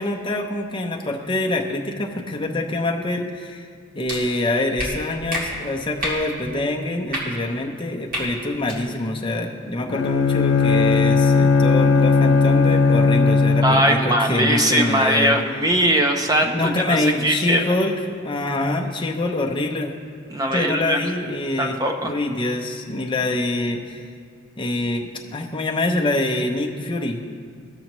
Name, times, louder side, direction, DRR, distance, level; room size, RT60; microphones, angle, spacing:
voice 1, 0.0-3.7 3.9-15.4 16.4-19.9 20.5-21.8 22.0-24.0 24.6-27.2, left 2 dB, 25° left, 1 dB, 0.7 m, -25 dB
sound 1, 4.1-4.2 4.8-4.9 5.3-5.4 6.0-6.2 7.1-7.2 8.1-8.2 8.6-8.8, equal, 45° right, 2.0 m, -27 dB
Bowed string instrument, 9.9-14.0, left 4 dB, 65° left, 0.4 m, -17 dB
voice 2, 13.6-17.6 20.3-21.1 21.6-22.1, right 1 dB, 20° right, 3 dB, 0.6 m, -20 dB
16.0 x 6.3 x 3.1 m, 2.1 s
head